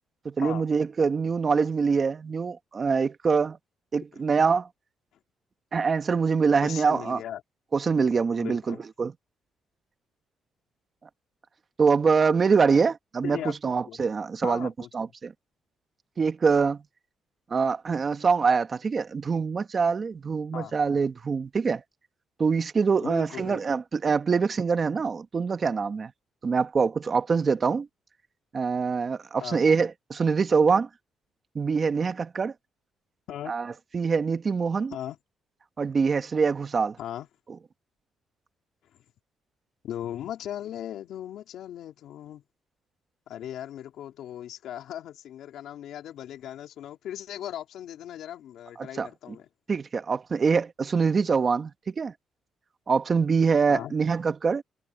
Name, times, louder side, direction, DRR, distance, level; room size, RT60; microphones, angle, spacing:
voice 1, 0.3-3.6 3.9-4.7 5.7-7.2 7.7-9.1 11.8-13.4 13.6-15.3 16.2-16.8 17.5-21.8 22.4-26.1 26.4-27.9 28.5-30.9 31.6-32.5 33.5-34.9 35.8-37.0 48.8-49.4 49.7-52.1 52.9-54.6, right 5 dB, 40° right, 1.8 m, -24 dB
voice 2, 6.6-7.4 8.4-8.8 13.2-14.0 14.4-14.9 20.5-20.7 23.0-23.8 29.4-29.6 33.3-33.5 34.9-35.2 37.0-37.3 39.8-42.4 43.3-49.5 53.7-53.9, left 11 dB, 80° left, 3.7 m, -38 dB
cardioid pair, 90°, 0 cm